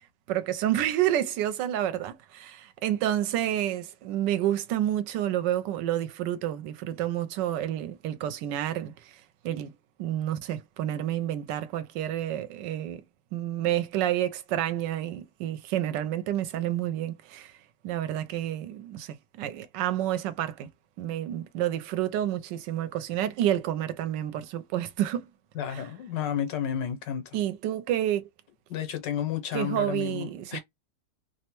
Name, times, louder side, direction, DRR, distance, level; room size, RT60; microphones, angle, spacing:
voice 1, 0.3-9.7 10.0-13.0 13.3-17.5 17.8-20.7 21.0-25.3 25.7-25.8 27.3-28.3 29.5-30.6, right 12 dB, 80° right, 1.2 m, -29 dB
voice 2, 25.5-27.4 28.7-30.6, left 9 dB, 85° left, 1.5 m, -31 dB
3.2 x 2.1 x 2.9 m
omnidirectional pair, 1.9 m